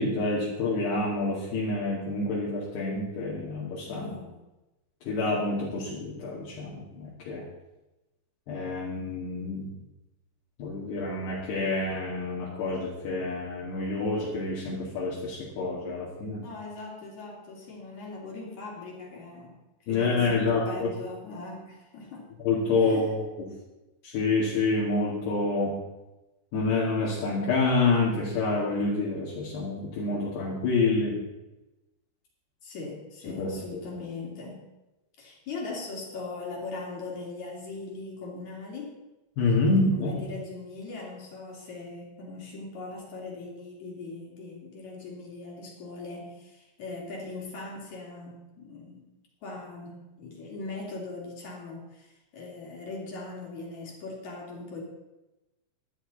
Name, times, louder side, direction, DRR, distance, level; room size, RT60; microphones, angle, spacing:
voice 1, 0.0-4.1 5.0-7.5 8.5-9.7 10.6-16.4 19.9-20.9 22.4-23.2 24.0-25.8 26.5-31.2 33.3-33.8 39.4-40.2, left 3 dB, 60° left, -6 dB, 4.1 m, -27 dB
voice 2, 3.8-4.4 16.4-19.6 19.8-22.3 22.8-23.1 32.6-34.6 35.2-38.9 39.6-49.1 49.4-54.8, left 3 dB, 40° left, -2 dB, 3.8 m, -40 dB
16.5 x 11.5 x 4.1 m, 1.0 s
omnidirectional pair, 5.6 m